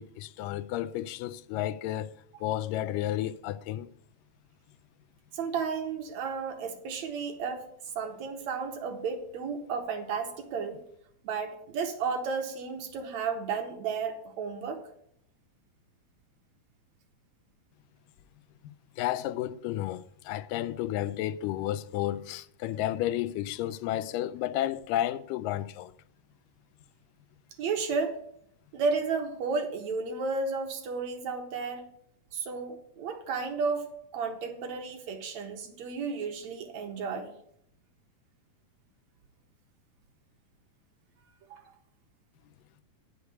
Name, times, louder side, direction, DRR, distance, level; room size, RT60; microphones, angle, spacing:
voice 1, 0.0-3.9 19.0-25.9, left 13 dB, 90° left, 2.2 m, -32 dB
voice 2, 5.3-7.7 8.0-10.8 11.2-14.8 27.6-28.2 28.7-31.9 32.3-33.9 34.1-37.3 41.5-41.6, right 5 dB, 65° right, 2.5 m, -33 dB
9.5 x 6.5 x 8.2 m
omnidirectional pair, 3.8 m